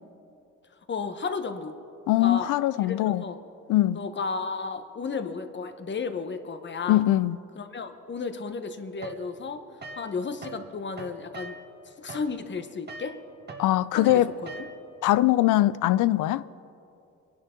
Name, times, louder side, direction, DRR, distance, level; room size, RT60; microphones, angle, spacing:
voice 1, 0.9-1.7 2.2-2.5 2.8-3.4 3.9-7.1 7.6-9.6 9.9-11.6 11.8-13.2 13.9-14.7, left 4 dB, 40° left, 1.1 m, -33 dB
voice 2, 2.1-3.2 3.7-4.0 6.9-7.4 13.6-14.3 15.0-16.4, left 15 dB, 80° left, 0.5 m, -22 dB
sound 1, 9.0-10.7 10.9-15.0, right 2 dB, 35° right, 1.5 m, -43 dB
24.5 x 11.0 x 3.8 m
cardioid pair, 90°, 30 cm